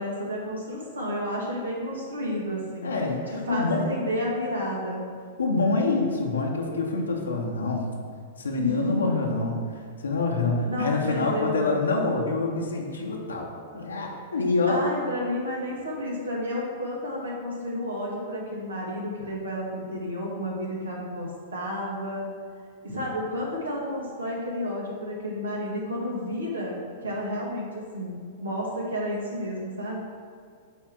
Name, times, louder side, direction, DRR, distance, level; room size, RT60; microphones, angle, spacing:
voice 1, 0.0-2.9 3.3-5.1 8.6-9.1 10.6-11.7 14.7-22.4 22.8-30.0, left 1 dB, 75° right, -3 dB, 1.9 m, -31 dB
voice 2, 2.8-3.9 5.4-7.9 8.4-9.6 10.0-14.9, left 3 dB, 75° left, -1 dB, 1.0 m, -26 dB
9.1 x 3.4 x 6.1 m, 2.1 s
figure-of-eight pair, 100°, 0 cm